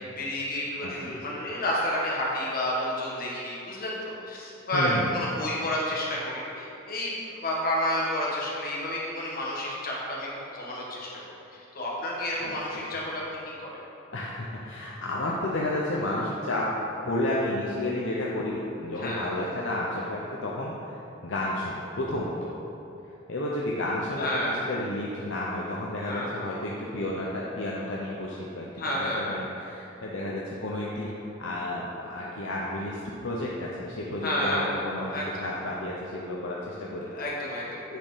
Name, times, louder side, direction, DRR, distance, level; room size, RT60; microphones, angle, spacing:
voice 1, 0.0-7.2 7.4-10.3 10.5-11.2 11.5-13.7 19.0-19.3 24.2-24.5 26.0-26.3 28.8-29.4 34.2-35.4 37.1-37.8, left 1 dB, 45° left, -5 dB, 1.6 m, -30 dB
voice 2, 0.8-1.2 4.7-5.2 12.4-12.8 14.1-16.7 17.0-22.5 23.3-24.3 24.7-28.8 29.2-31.1 31.4-35.1 35.4-37.1 37.9-38.0, left 1 dB, 65° left, -4 dB, 0.7 m, -31 dB
9.1 x 4.5 x 5.0 m, 2.9 s
head